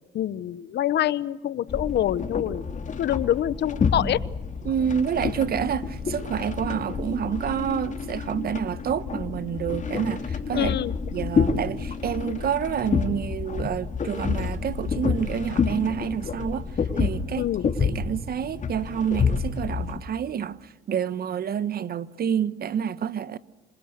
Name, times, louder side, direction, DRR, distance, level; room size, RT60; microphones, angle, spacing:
voice 1, 0.1-2.6 3.0-4.2 10.5-10.9 17.4-17.7, left 11 dB, 55° left, 1.0 m, -25 dB
sound 1, 1.7-20.0, left 5 dB, 35° left, 3.3 m, -29 dB
voice 2, 4.6-10.8 11.1-16.7 17.0-23.4, right 8 dB, 50° right, 1.3 m, -28 dB
27.5 x 26.5 x 6.7 m
supercardioid pair, 85°, 21 cm